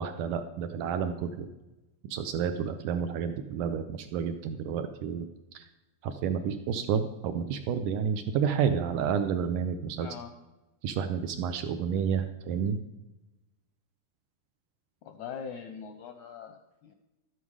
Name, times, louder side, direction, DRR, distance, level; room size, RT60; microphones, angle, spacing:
voice 1, 0.0-1.5 2.0-5.3 5.5-5.6 6.0-10.1 10.8-12.8, right 7 dB, 75° right, 8 dB, 2.0 m, -30 dB
voice 2, 10.0-10.3 15.1-17.0, left 7 dB, 75° left, 6 dB, 1.8 m, -42 dB
12.5 x 9.3 x 4.8 m, 1.0 s
omnidirectional pair, 4.1 m